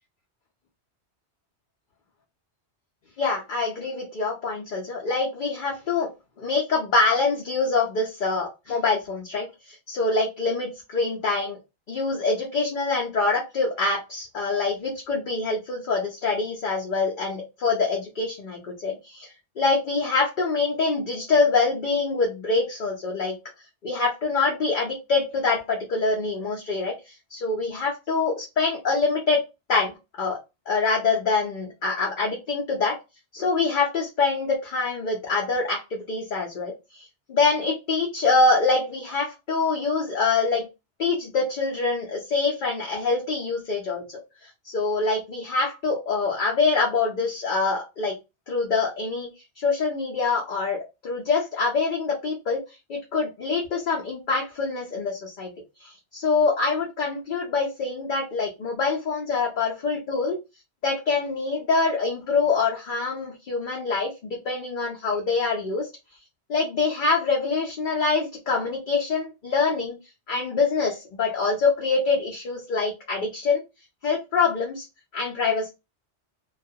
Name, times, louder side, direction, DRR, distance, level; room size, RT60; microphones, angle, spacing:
voice 1, 3.2-6.1 6.4-11.6 11.9-23.4 23.8-29.4 29.7-30.4 30.7-33.0 33.3-40.7 41.0-44.2 44.6-48.1 48.5-49.3 49.6-52.6 52.9-55.5 55.8-60.4 60.8-65.9 66.5-70.0 70.3-73.6 74.0-74.9 75.1-75.7, left 4 dB, 55° left, -1 dB, 0.7 m, -25 dB
2.3 x 2.3 x 2.6 m, 0.25 s
omnidirectional pair, 1.2 m